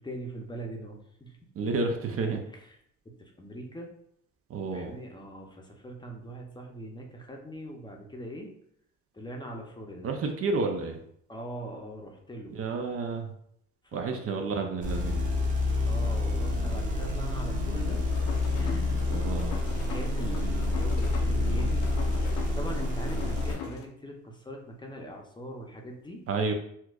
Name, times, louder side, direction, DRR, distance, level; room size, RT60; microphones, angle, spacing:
voice 1, 0.0-1.4 2.5-2.8 3.2-3.9 4.7-8.5 9.1-10.1 11.3-12.6 13.9-14.2 15.8-18.0 18.6-19.0 19.9-21.9 22.2-26.2, right 1 dB, 15° left, 1 dB, 0.6 m, -41 dB
voice 2, 1.6-2.4 4.5-4.9 10.0-11.0 12.5-13.3 13.9-15.2 19.1-19.6 26.3-26.5, right 4 dB, 50° right, 4 dB, 0.5 m, -30 dB
sound 1, 14.8-23.5, left 2 dB, 25° right, 1.0 m, -28 dB
sound 2, 18.1-23.9, left 7 dB, 70° left, 0.6 m, -42 dB
4.3 x 2.3 x 2.4 m, 0.70 s
cardioid pair, 85°, 30 cm